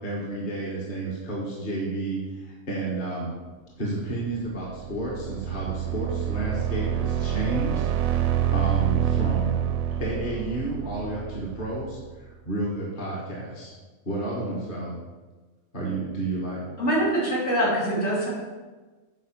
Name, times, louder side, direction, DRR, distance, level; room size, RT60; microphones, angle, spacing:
voice 1, 0.0-3.4 3.8-9.6 10.0-13.7 14.1-15.0 15.7-16.6, right 2 dB, 40° left, -4 dB, 1.8 m, -31 dB
sound 1, 4.4-12.1, right 10 dB, 85° right, 1.0 m, -27 dB
voice 2, 16.8-18.3, right 1 dB, 70° left, -7 dB, 4.0 m, -24 dB
8.1 x 5.2 x 7.5 m, 1.3 s
omnidirectional pair, 1.4 m